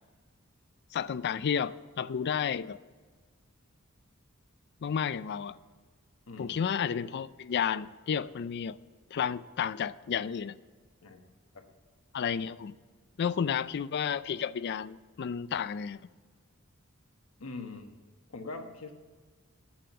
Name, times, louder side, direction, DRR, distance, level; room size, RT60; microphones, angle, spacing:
voice 1, 0.9-2.8 4.8-5.6 6.4-8.8 9.1-10.6 12.1-12.7 13.2-16.0, left 7 dB, 50° left, 17 dB, 0.4 m, -31 dB
voice 2, 6.3-6.6 11.0-11.2 11.5-11.7 13.3-13.5 17.4-18.0 18.3-18.9, left 3 dB, 75° left, 5 dB, 1.2 m, -43 dB
8.8 x 7.6 x 6.8 m, 1.4 s
head